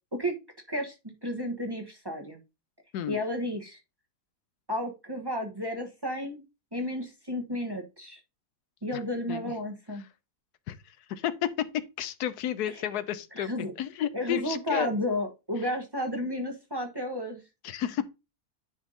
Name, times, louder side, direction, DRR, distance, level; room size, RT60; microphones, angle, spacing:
voice 1, 1.2-2.4 3.1-3.8 4.7-6.4 6.7-8.2 8.8-10.0 12.7-12.8 13.3-13.7 14.1-17.4, left 1 dB, 15° right, 1.1 m, -32 dB
voice 2, 12.0-13.5 13.8-14.9 17.6-18.0, left 10 dB, 85° left, 1.2 m, -31 dB
10.0 x 3.6 x 3.9 m
omnidirectional pair, 1.6 m